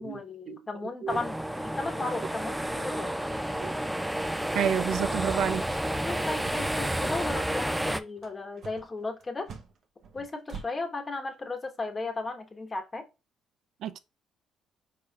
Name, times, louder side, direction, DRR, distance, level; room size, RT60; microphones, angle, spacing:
voice 1, 0.0-3.1 6.0-9.5 10.1-13.0, left 3 dB, 25° left, 1.1 m, -35 dB
sound 1, 1.1-8.0, right 1 dB, 5° right, 0.4 m, -31 dB
voice 2, 4.5-5.6 13.8-14.0, right 8 dB, 70° right, 0.4 m, -29 dB
sound 2, 5.6-10.7, right 5 dB, 55° right, 0.8 m, -46 dB
4.9 x 4.2 x 2.4 m
cardioid pair, 105°, 0 cm